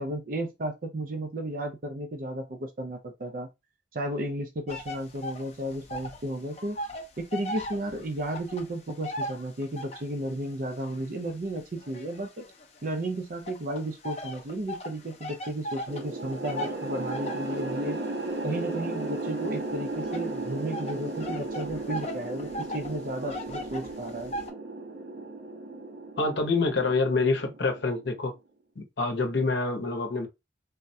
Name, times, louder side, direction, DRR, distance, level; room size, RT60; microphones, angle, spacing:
voice 1, 0.0-3.5 3.9-6.8 7.2-12.5 12.8-18.0 18.4-24.3, right 1 dB, 45° right, 0.5 m, -33 dB
sound 1, 4.7-6.3 6.5-10.2 10.8-12.8 13.5-24.5, left 1 dB, 35° left, 0.5 m, -38 dB
sound 2, 15.9-28.2, right 2 dB, 85° right, 1.1 m, -35 dB
voice 2, 26.2-28.3 28.8-30.3, left 3 dB, 70° left, 0.7 m, -26 dB
3.5 x 2.1 x 2.6 m
head